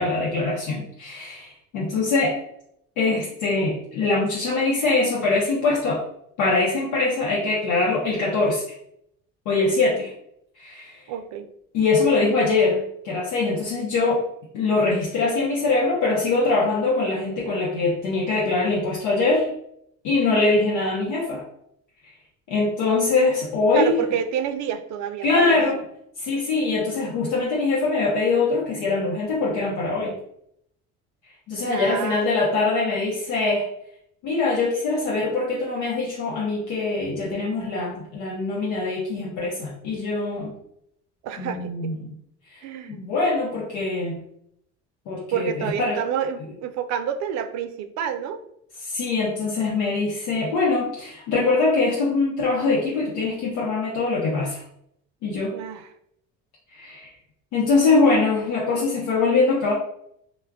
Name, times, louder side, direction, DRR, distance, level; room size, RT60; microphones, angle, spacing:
voice 1, 0.0-2.4 3.0-6.0 6.4-8.7 9.5-10.1 10.6-11.0 11.7-14.2 14.5-19.5 20.0-21.4 22.5-23.9 25.2-25.8 26.2-30.1 31.5-33.7 34.2-40.5 41.4-42.1 42.5-42.6 42.9-44.2 45.1-46.0 48.8-54.6 55.2-55.6 56.7-57.1 57.5-59.7, left 3 dB, 70° left, -3 dB, 0.7 m, -23 dB
voice 2, 11.1-11.5 23.7-25.6 31.7-32.3 41.2-41.9 42.6-43.0 45.3-48.4 55.5-55.9 57.9-58.1, right 9 dB, 60° right, 9 dB, 0.5 m, -28 dB
2.2 x 2.1 x 3.4 m, 0.72 s
supercardioid pair, 80°, 31 cm